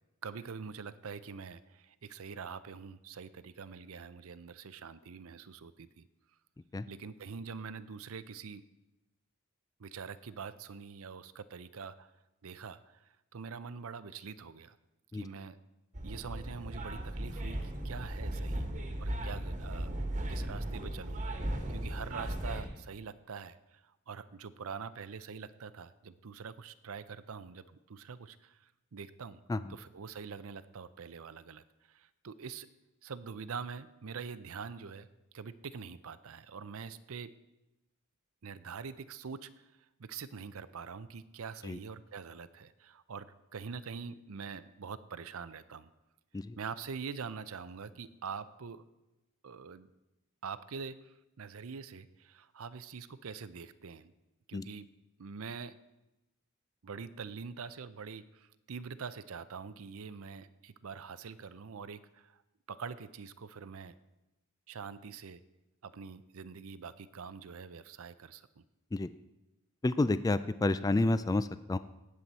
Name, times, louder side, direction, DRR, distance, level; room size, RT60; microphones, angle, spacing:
voice 1, 0.2-6.1 6.9-8.6 9.8-12.1 12.4-14.8 15.1-15.6 16.0-18.7 19.0-19.9 20.3-21.2 21.7-29.4 29.7-32.7 33.0-35.1 35.3-37.3 38.4-39.7 40.0-45.9 46.6-48.8 49.4-49.9 50.4-54.1 54.5-54.9 55.2-55.8 56.8-62.4 62.7-63.9 64.7-65.4 65.8-68.6, right 5 dB, 70° right, 14 dB, 0.6 m, -44 dB
sound 1, 15.9-22.7, right 1 dB, 35° right, 1.4 m, -37 dB
voice 2, 69.8-71.8, left 2 dB, 15° left, 13 dB, 0.3 m, -30 dB
18.0 x 7.7 x 4.2 m, 0.98 s
head